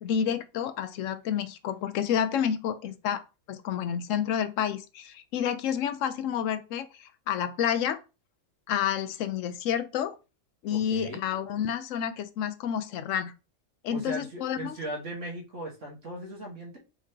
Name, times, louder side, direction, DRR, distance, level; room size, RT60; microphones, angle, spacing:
voice 1, 0.0-3.2 3.5-8.0 8.7-10.1 10.6-13.3 13.8-14.8, left 9 dB, 90° left, 1.0 m, -29 dB
voice 2, 10.7-11.2 13.9-16.8, right 1 dB, 75° right, 1.8 m, -38 dB
4.6 x 3.6 x 2.8 m
omnidirectional pair, 1.3 m